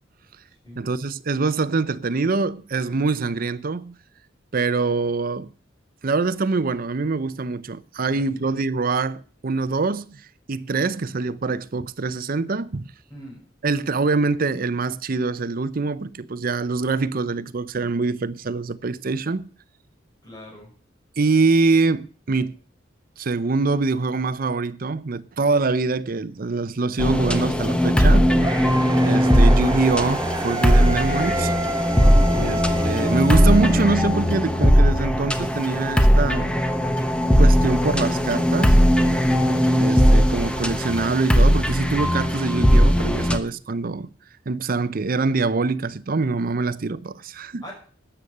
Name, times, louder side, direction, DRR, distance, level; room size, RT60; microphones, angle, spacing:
voice 1, 0.8-4.0 4.5-5.5 6.0-12.9 13.6-19.5 21.2-22.6 23.2-28.3 29.0-31.5 32.4-32.6 32.8-36.6 37.4-38.8 39.7-44.1 44.5-47.6, right 3 dB, 50° right, 0.6 m, -24 dB
voice 2, 8.1-8.5 13.1-13.4 20.2-20.7 32.3-32.7 47.6-47.7, left 1 dB, 20° left, 5.7 m, -39 dB
sound 1, 27.0-43.4, equal, 5° left, 1.0 m, -18 dB
sound 2, 28.4-34.5, right 2 dB, 20° right, 0.8 m, -30 dB
13.0 x 8.7 x 6.6 m
head